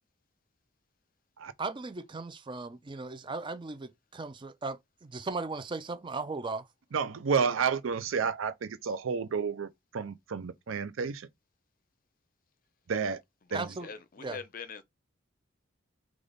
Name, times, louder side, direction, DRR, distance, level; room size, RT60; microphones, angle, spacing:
voice 1, 1.6-6.7 13.5-13.9 14.2-14.4, right 3 dB, 25° right, 0.4 m, -37 dB
voice 2, 6.9-11.3 12.9-13.2 13.5-13.6, right 6 dB, 80° right, 0.5 m, -31 dB
voice 3, 13.4-14.8, left 5 dB, 45° left, 0.5 m, -43 dB
3.3 x 2.4 x 3.9 m
head